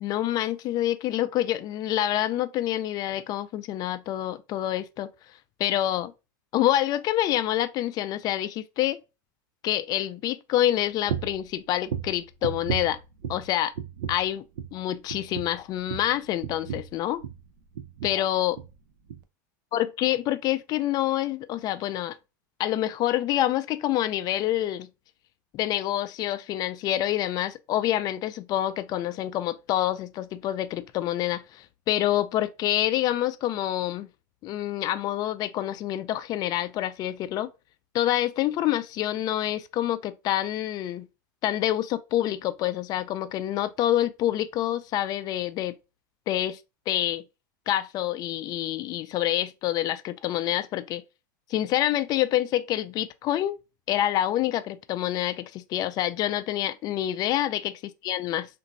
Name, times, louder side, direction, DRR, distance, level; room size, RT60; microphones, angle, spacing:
voice 1, 0.0-5.1 5.6-6.1 6.5-9.0 9.6-13.0 13.3-13.7 14.1-14.4 14.7-17.2 18.0-18.6 19.7-22.2 22.6-24.9 25.5-34.1 34.4-37.5 37.9-41.1 41.4-45.8 46.3-46.6 46.9-47.2 47.7-51.0 51.5-53.6 53.9-58.5, left 13 dB, 40° left, 0.3 m, -27 dB
sound 1, 11.1-11.4 11.9-13.5 13.7-14.3 14.5-14.8 15.1-17.5 17.7-18.2 18.5-18.7 19.1-19.2, right 8 dB, 70° right, 0.4 m, -34 dB
2.9 x 2.5 x 2.5 m
hypercardioid pair, 105°, 10 cm